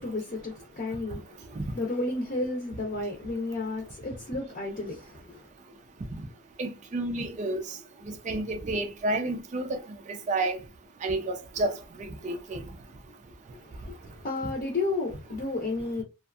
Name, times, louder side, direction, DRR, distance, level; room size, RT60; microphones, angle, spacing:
voice 1, 0.0-5.4 13.5-16.0, left 2 dB, 40° left, 0.7 m, -32 dB
voice 2, 6.6-7.6 8.1-9.8 10.3-10.6 11.0-11.7 12.0-12.6, right 2 dB, 35° right, 0.4 m, -30 dB
2.6 x 2.4 x 2.3 m
head